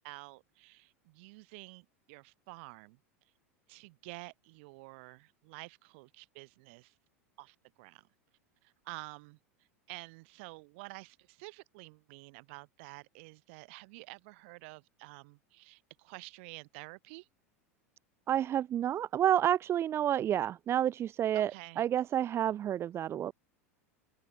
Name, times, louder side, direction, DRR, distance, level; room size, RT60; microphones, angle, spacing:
voice 1, 0.0-3.0 3.7-7.0 7.4-8.1 8.6-9.4 9.9-17.3 21.3-21.8, right 28 dB, 55° right, 7.5 m, -50 dB
voice 2, 18.3-21.5 21.8-23.3, right 11 dB, 35° right, 4.2 m, -29 dB
open air
figure-of-eight pair, 80°, 8 cm